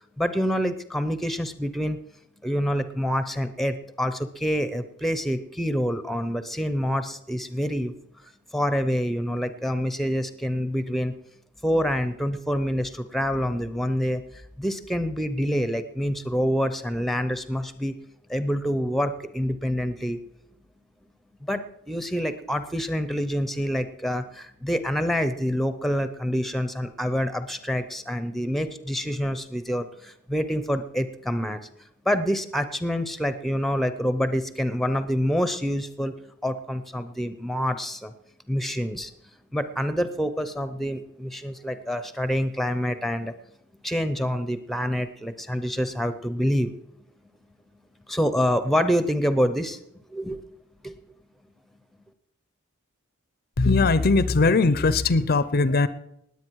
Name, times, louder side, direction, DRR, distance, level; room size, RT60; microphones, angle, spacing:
voice 1, 0.2-2.0 2.4-7.9 8.5-11.1 11.6-14.2 14.6-17.9 18.3-20.2 21.4-31.6 32.1-36.1 36.4-38.1 38.5-39.1 39.5-43.3 43.8-46.7 48.1-49.8 50.1-50.4 50.8-51.0, equal, ahead, 0.7 m, -26 dB
voice 2, 53.6-55.9, left 3 dB, 45° left, 0.5 m, -20 dB
19.5 x 8.4 x 4.7 m
head